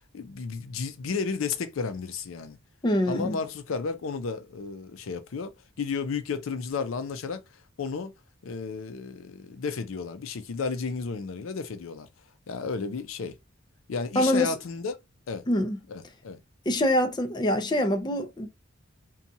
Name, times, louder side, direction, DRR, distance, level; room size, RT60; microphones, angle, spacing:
voice 1, 0.1-2.6 3.1-7.4 7.8-8.1 8.4-12.1 12.5-13.4 13.9-15.0 15.3-15.5 15.9-16.4, left 5 dB, 80° left, 0.5 m, -33 dB
voice 2, 2.8-3.4 14.2-14.5 15.5-15.8 16.7-18.5, left 1 dB, 20° left, 0.5 m, -24 dB
2.7 x 2.2 x 2.6 m
head